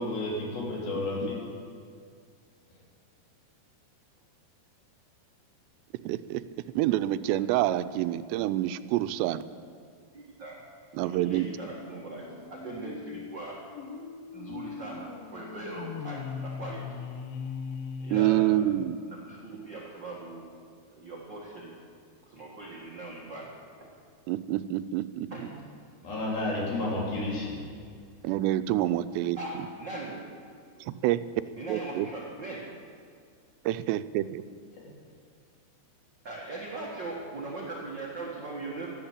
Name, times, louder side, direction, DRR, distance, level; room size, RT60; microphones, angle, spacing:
voice 1, 0.0-1.4 26.0-27.6 34.7-34.8, left 2 dB, 60° left, -4 dB, 4.8 m, -31 dB
voice 2, 6.0-6.4 6.8-9.4 10.9-11.5 18.1-19.0 24.3-25.5 28.2-29.7 30.9-31.3 31.7-32.1 33.7-34.4, right 14 dB, 90° right, 13 dB, 2.7 m, -27 dB
voice 3, 10.1-10.6 11.0-13.6 14.3-17.0 18.0-18.6 19.1-20.5 20.9-21.8 22.2-23.9 25.3-25.6 26.1-26.3 29.4-30.3 30.7-30.9 31.5-32.7 36.2-38.9, right 2 dB, 70° right, -3 dB, 1.0 m, -40 dB
sound 1, 11.6-19.1, left 6 dB, 75° left, 2.1 m, -40 dB
12.5 x 12.0 x 8.6 m, 2.1 s
omnidirectional pair, 4.8 m